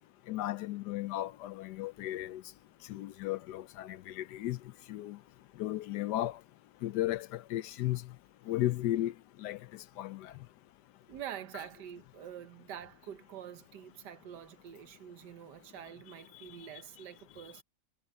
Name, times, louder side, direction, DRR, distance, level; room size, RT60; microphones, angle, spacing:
voice 1, 0.3-2.4 2.9-4.6 4.9-5.2 5.6-6.4 6.8-8.0 8.5-9.1 9.4-9.6 10.0-10.3, left 14 dB, 75° left, 1.1 m, -34 dB
voice 2, 11.1-17.6, right 10 dB, 70° right, 1.5 m, -46 dB
omnidirectional pair, 1.9 m